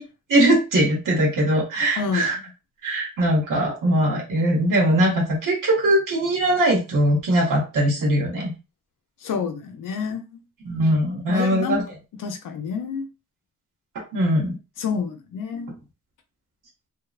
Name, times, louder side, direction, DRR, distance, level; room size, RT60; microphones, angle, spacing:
voice 1, 0.3-2.3 2.8-8.5 10.7-11.8 14.1-14.6, right 1 dB, 85° right, -3 dB, 0.8 m, -21 dB
voice 2, 2.0-2.3 9.2-10.4 11.3-11.8 12.2-13.1 14.8-15.8, left 5 dB, 85° left, 6 dB, 0.5 m, -28 dB
2.6 x 2.0 x 2.3 m, 0.29 s
cardioid pair, 60°, 31 cm